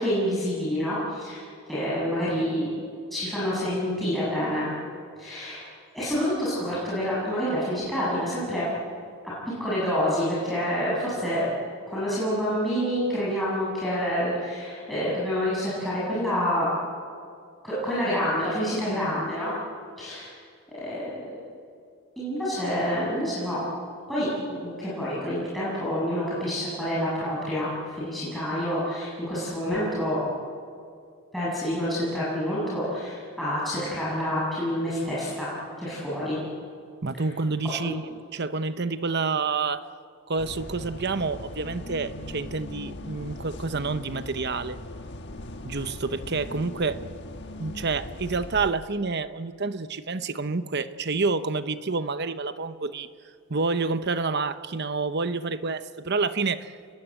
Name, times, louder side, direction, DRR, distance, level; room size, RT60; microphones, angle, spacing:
voice 1, 0.0-2.7 3.1-4.7 5.2-5.7 5.9-8.6 9.6-11.5 11.9-16.7 17.6-19.5 20.0-20.3 20.7-21.1 22.2-23.6 24.1-30.2 31.3-36.4 37.8-37.9, equal, ahead, -9 dB, 7.9 m, -28 dB
voice 2, 37.0-39.9 40.3-44.8 45.6-47.0 47.6-53.1 53.5-56.7, right 4 dB, 50° right, 11 dB, 0.9 m, -28 dB
sound 1, 40.4-48.7, left 1 dB, 55° left, 1.5 m, -39 dB
30.0 x 22.0 x 8.9 m, 2.4 s
head